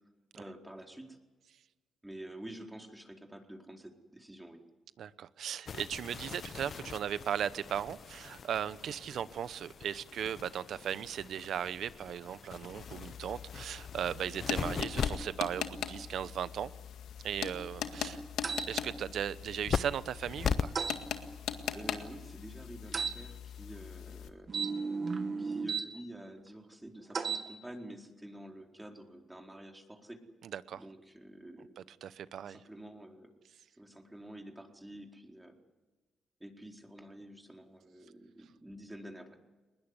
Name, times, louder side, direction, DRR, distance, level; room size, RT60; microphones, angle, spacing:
voice 1, 0.3-1.2 2.0-4.6 21.7-24.5 25.4-30.2 30.8-31.7 32.5-33.3 33.8-35.6 36.4-39.4, right 1 dB, 10° right, 2 dB, 4.4 m, -49 dB
voice 2, 5.0-16.7 17.2-18.2 18.7-20.7 30.4-30.8 31.8-32.6, right 9 dB, 75° right, 15 dB, 1.0 m, -37 dB
sound 1, 5.7-21.8, left 6 dB, 60° left, 0.8 m, -41 dB
sound 2, 12.8-24.3, left 8 dB, 85° left, 1.9 m, -41 dB
sound 3, 18.4-18.7 20.8-21.0 22.9-23.2 24.5-25.9 27.1-27.5, right 5 dB, 50° right, 2.0 m, -34 dB
21.0 x 20.0 x 9.9 m, 1.2 s
supercardioid pair, 65°, 0 cm